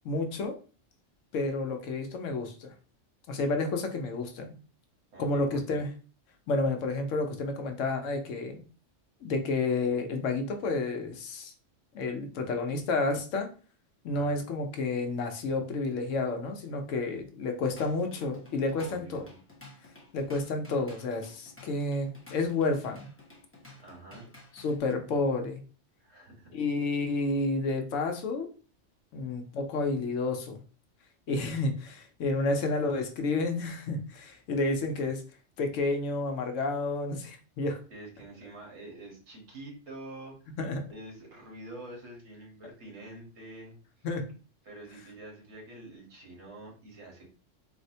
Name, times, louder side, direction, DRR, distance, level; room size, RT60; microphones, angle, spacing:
voice 1, 0.0-0.5 1.3-2.7 3.3-4.5 5.2-5.9 6.5-8.6 9.2-11.5 11.9-13.5 14.0-19.3 20.1-23.1 24.5-25.6 26.5-28.5 29.1-30.6 31.3-35.2 35.6-37.8 40.6-40.8 44.0-44.3, left 3 dB, 85° left, 5 dB, 1.0 m, -30 dB
voice 2, 5.1-5.8 14.1-14.4 18.7-19.4 23.8-24.3 26.0-26.6 29.2-29.5 37.9-40.6 40.9-44.1 44.6-47.3, right 1 dB, 65° right, -2 dB, 1.4 m, -47 dB
Drum kit / Drum, 17.4-24.8, left 2 dB, 15° left, 0.6 m, -52 dB
4.0 x 2.1 x 2.7 m, 0.37 s
omnidirectional pair, 1.3 m